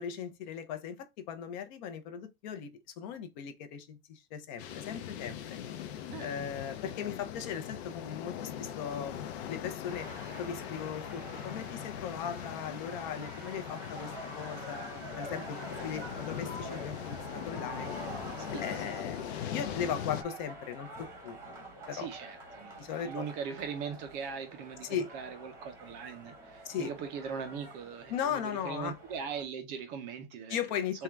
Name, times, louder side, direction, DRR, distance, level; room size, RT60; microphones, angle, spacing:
voice 1, 0.0-2.7 3.0-5.6 6.2-10.1 10.4-17.9 18.5-22.1 22.8-23.3 24.8-25.1 26.6-26.9 28.1-28.9 30.5-31.0, left 8 dB, 50° left, 0.6 m, -38 dB
sound 1, 4.6-20.2, left 9 dB, 90° left, 0.6 m, -41 dB
voice 2, 6.1-6.4 18.5-19.0 21.9-30.6 30.9-31.0, right 6 dB, 25° right, 0.4 m, -40 dB
sound 2, 9.8-29.4, right 1 dB, 10° right, 0.9 m, -47 dB
3.6 x 2.3 x 4.3 m
supercardioid pair, 170°, 31 cm